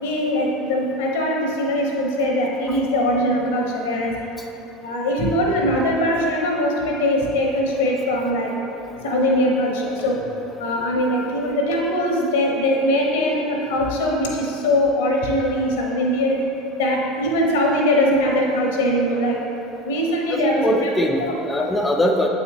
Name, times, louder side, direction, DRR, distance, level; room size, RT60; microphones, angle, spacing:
voice 1, 0.0-4.3 4.8-8.5 9.0-10.3 10.6-16.4 16.8-19.4 19.8-20.9 21.2-21.4, equal, 70° left, 0 dB, 0.9 m, -21 dB
voice 2, 20.3-22.3, equal, 15° left, 1 dB, 0.5 m, -21 dB
8.2 x 4.2 x 2.9 m, 2.9 s
figure-of-eight pair, 70°, 0 cm